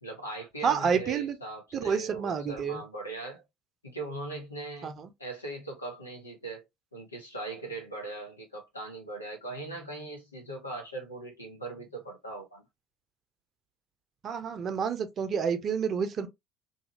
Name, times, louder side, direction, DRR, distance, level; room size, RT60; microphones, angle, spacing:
voice 1, 0.0-3.4 3.8-4.9 5.2-6.6 6.9-12.6, right 2 dB, 90° left, 0.8 m, -40 dB
voice 2, 0.6-1.4 1.7-2.8 4.8-5.1 14.2-16.3, right 6 dB, 40° right, 0.6 m, -29 dB
2.7 x 2.3 x 2.9 m
figure-of-eight pair, 60°, 0 cm